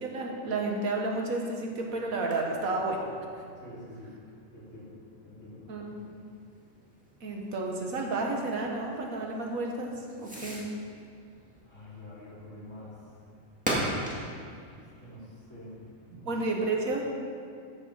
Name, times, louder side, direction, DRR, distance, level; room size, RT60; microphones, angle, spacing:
voice 1, 0.0-3.0 5.7-5.9 6.1-6.2 7.2-9.9 10.2-10.6 16.3-17.1, right 2 dB, 90° right, 0 dB, 1.8 m, -31 dB
Fireworks, 1.6-16.2, right 1 dB, 5° right, 2.2 m, -41 dB
voice 2, 3.6-5.0 5.2-5.9 11.7-13.1 14.7-15.8 16.1-16.3, left 1 dB, 65° left, -7 dB, 3.3 m, -47 dB
14.0 x 6.0 x 5.7 m, 2.3 s
omnidirectional pair, 1.4 m